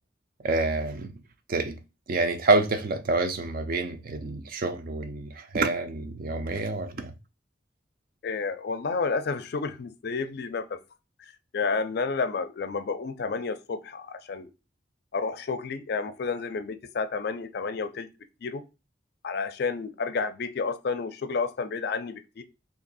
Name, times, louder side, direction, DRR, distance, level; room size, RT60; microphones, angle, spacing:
voice 1, 0.4-1.1 1.5-1.8 2.1-7.1, right 3 dB, 50° right, 0.4 m, -27 dB
voice 2, 8.2-10.8 11.2-14.5 15.1-18.1 18.4-18.6 19.2-22.4, left 4 dB, 55° left, 0.4 m, -30 dB
2.8 x 2.6 x 4.0 m
head